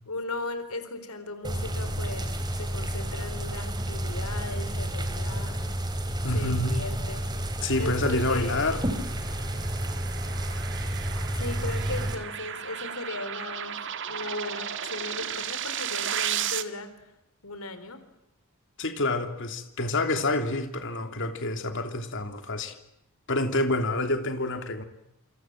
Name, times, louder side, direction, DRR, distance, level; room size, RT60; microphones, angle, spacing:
voice 1, 0.1-2.3 2.6-5.8 6.3-7.2 7.8-8.7 11.3-13.8 14.1-16.9 17.4-18.0, left 2 dB, 85° left, 4.1 m, -37 dB
Short Rain, 1.4-12.2, right 1 dB, 20° right, 3.8 m, -30 dB
voice 2, 6.2-6.8 7.6-8.9 18.8-22.8 23.3-24.8, left 2 dB, 60° left, 3.0 m, -28 dB
sound 1, 7.8-16.6, right 9 dB, 55° right, 1.9 m, -35 dB
28.0 x 26.5 x 7.4 m
head